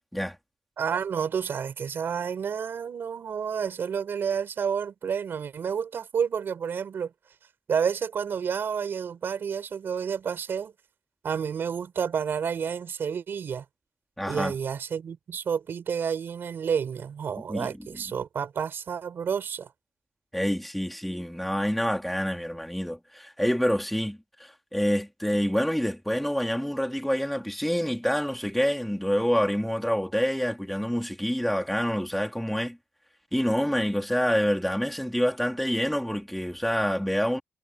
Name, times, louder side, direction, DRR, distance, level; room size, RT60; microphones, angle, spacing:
voice 1, 0.8-7.1 7.7-10.7 11.2-13.6 14.3-19.7, right 7 dB, 55° right, 4.4 m, -30 dB
voice 2, 14.2-14.5 17.5-17.7 20.3-32.8 33.3-37.4, equal, ahead, 3.0 m, -27 dB
wide cardioid pair, 155°, 4 cm